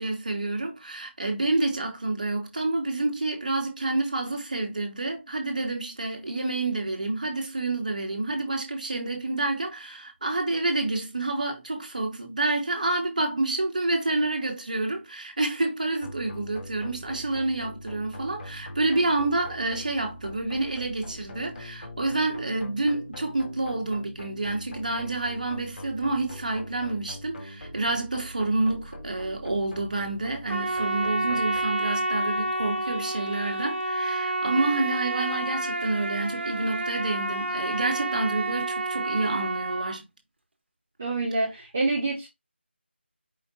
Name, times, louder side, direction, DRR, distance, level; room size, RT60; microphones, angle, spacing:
voice 1, 0.0-40.0, right 2 dB, 40° right, 1.5 m, -28 dB
sound 1, 16.0-31.6, left 1 dB, 60° left, 2.3 m, -42 dB
Trumpet, 30.5-40.0, right 2 dB, 70° right, 1.2 m, -29 dB
voice 2, 41.0-42.3, right 3 dB, 10° right, 0.4 m, -27 dB
5.1 x 2.5 x 4.1 m
figure-of-eight pair, 175°, 6 cm